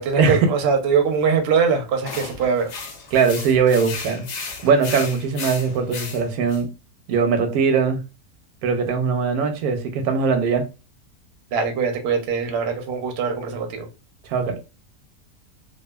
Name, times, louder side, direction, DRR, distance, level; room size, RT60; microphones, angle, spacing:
voice 1, 0.0-2.7 11.5-13.8, right 5 dB, 60° right, 0.7 m, -22 dB
sound 1, 2.0-6.6, left 4 dB, 60° left, 0.8 m, -34 dB
voice 2, 3.1-4.3 4.6-6.7 7.1-8.0 8.6-10.7 14.2-14.6, right 5 dB, 80° right, 1.1 m, -20 dB
2.7 x 2.4 x 2.3 m
omnidirectional pair, 1.6 m